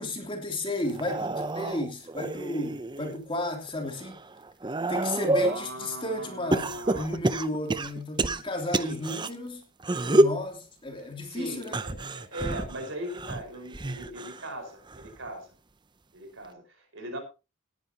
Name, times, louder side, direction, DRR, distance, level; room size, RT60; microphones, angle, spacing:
voice 1, 0.0-4.2 4.9-6.7 6.9-9.6 9.9-11.8, left 1 dB, 25° left, 3 dB, 3.0 m, -33 dB
sound 1, 0.8-3.2 3.7-5.6 6.5-9.3 9.8-10.4 11.6-14.5 14.9-15.3 16.4-16.5, right 2 dB, 20° right, 0.6 m, -28 dB
voice 2, 5.4-7.1 8.3-8.4 8.8-9.0 11.2-15.5 16.1-17.2, right 1 dB, 60° right, 6 dB, 4.9 m, -39 dB
19.0 x 10.5 x 2.9 m, 0.29 s
head